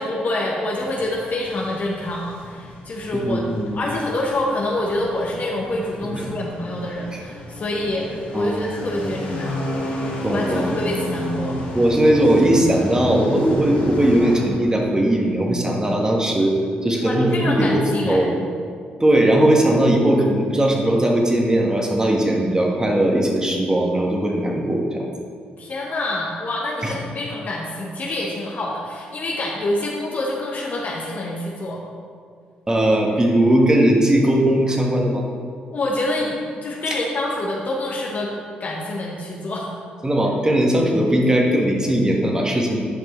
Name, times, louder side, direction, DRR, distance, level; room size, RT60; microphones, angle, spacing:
voice 1, 0.0-3.4 3.7-9.6 10.3-11.6 17.0-18.2 25.6-31.8 35.7-38.3 38.6-39.7, left 1 dB, 50° left, -3 dB, 1.1 m, -26 dB
sound 1, 0.7-14.4, left 1 dB, 80° left, 1.9 m, -32 dB
voice 2, 3.1-3.8 6.1-6.2 7.1-7.2 8.3-8.7 9.0-9.1 10.2-10.7 11.7-16.5 16.8-18.3 19.0-25.0 26.8-26.9 32.7-35.2 36.9-37.0 40.0-42.8, right 1 dB, 20° right, 0 dB, 1.5 m, -19 dB
10.0 x 5.2 x 3.2 m, 2.1 s
supercardioid pair, 55°, 4 cm